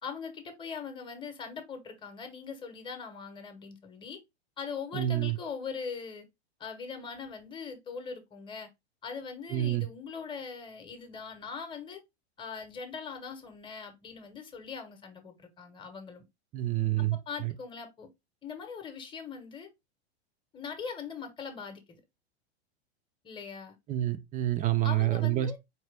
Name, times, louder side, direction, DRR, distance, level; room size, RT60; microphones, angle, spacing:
voice 1, 0.0-4.2 4.6-6.3 6.6-8.7 9.0-12.0 12.4-16.2 17.3-18.1 18.4-19.7 20.5-22.0 23.2-23.8 24.8-25.6, left 5 dB, 15° left, 1.0 m, -41 dB
voice 2, 4.9-5.4 9.5-9.9 16.5-17.5 23.9-25.6, right 14 dB, 25° right, 0.5 m, -28 dB
4.4 x 2.9 x 3.3 m
hypercardioid pair, 105°, 33 cm